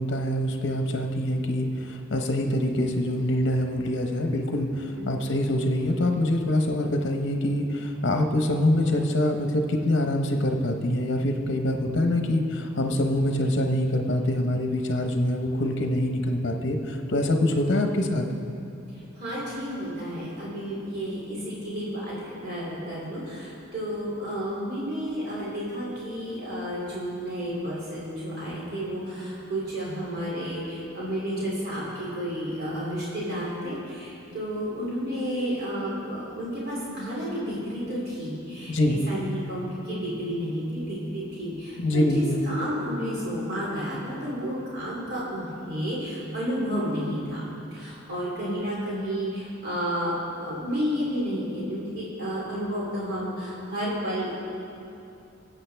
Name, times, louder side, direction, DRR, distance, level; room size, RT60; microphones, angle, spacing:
voice 1, 0.0-18.2 38.7-39.0 41.8-42.4, left 1 dB, 55° left, 4 dB, 0.8 m, -25 dB
voice 2, 19.2-47.4 47.7-50.1 50.4-54.3, equal, 50° right, -7 dB, 2.8 m, -31 dB
19.0 x 7.9 x 3.4 m, 2.7 s
head